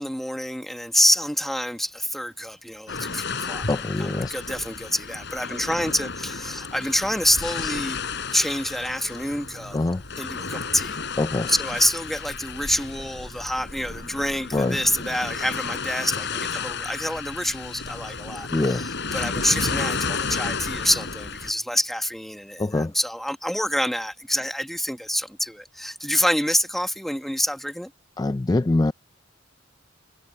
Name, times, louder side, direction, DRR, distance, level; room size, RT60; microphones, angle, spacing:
voice 1, 0.0-3.7 4.0-8.0 8.3-9.8 10.2-11.0 11.5-27.9, equal, ahead, 1.7 m, -27 dB
sound 1, 2.9-21.5, left 4 dB, 65° left, 5.1 m, -32 dB
voice 2, 3.7-4.3 9.7-10.0 11.2-11.5 14.5-14.8 18.5-18.9 22.6-22.9 28.2-28.9, left 2 dB, 20° left, 0.4 m, -23 dB
head